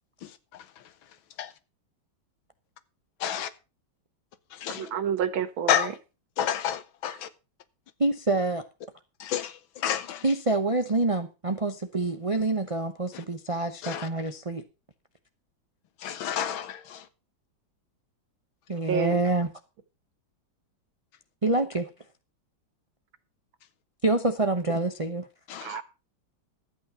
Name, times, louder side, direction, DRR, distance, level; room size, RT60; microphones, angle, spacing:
voice 1, 0.2-0.7 1.4-1.5 3.2-3.5 4.5-4.9 5.7-5.9 6.4-7.3 9.2-10.2 13.1-13.2 13.8-14.1 16.0-17.1 25.5-25.8, left 10 dB, 85° left, 1.8 m, -30 dB
voice 2, 4.7-5.9 18.9-19.2 25.6-25.8, right 8 dB, 85° right, 2.1 m, -29 dB
voice 3, 8.0-8.6 10.2-14.6 18.7-19.5 21.4-21.9 24.0-25.3, right 2 dB, 50° right, 0.4 m, -26 dB
12.5 x 8.9 x 5.6 m
omnidirectional pair, 2.1 m